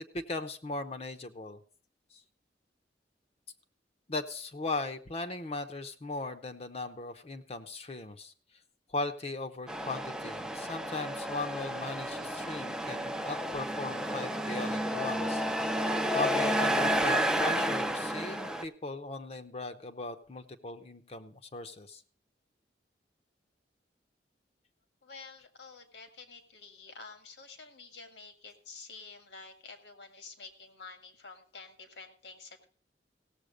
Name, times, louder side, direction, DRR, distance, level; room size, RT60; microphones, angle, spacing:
voice 1, 0.0-1.6 2.1-2.2 4.1-8.3 8.9-15.4 16.1-22.0, left 2 dB, 35° left, 6 dB, 0.8 m, -38 dB
Truck, 9.7-18.6, equal, 5° right, 0.5 m, -31 dB
voice 2, 25.0-32.7, left 4 dB, 75° left, 6 dB, 1.9 m, -49 dB
16.5 x 7.5 x 5.1 m, 0.43 s
head